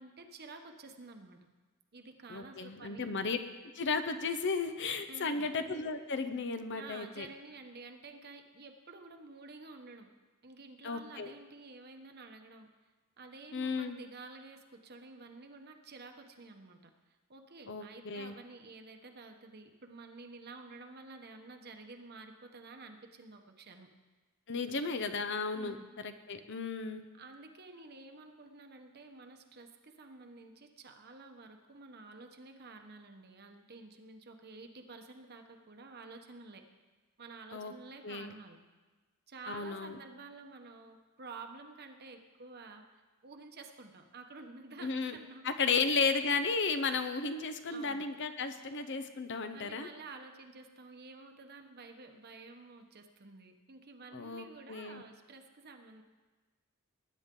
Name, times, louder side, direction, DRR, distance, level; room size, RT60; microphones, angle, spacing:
voice 1, 0.0-1.4 1.9-3.1 5.1-5.5 6.7-10.1 10.4-12.7 13.2-16.9 17.3-23.9 25.5-25.9 27.2-36.6 37.2-38.6 39.3-46.0 47.7-48.1 49.5-56.0, right 3 dB, 45° right, 5 dB, 1.1 m, -51 dB
voice 2, 2.3-3.4 3.7-7.3 10.8-11.3 13.5-14.0 17.7-18.3 24.5-25.8 26.0-27.0 37.5-37.7 38.0-38.3 39.5-40.0 44.8-45.1 45.4-49.9 54.1-55.0, left 4 dB, 55° left, 8 dB, 0.8 m, -34 dB
19.5 x 9.7 x 3.8 m, 1.3 s
head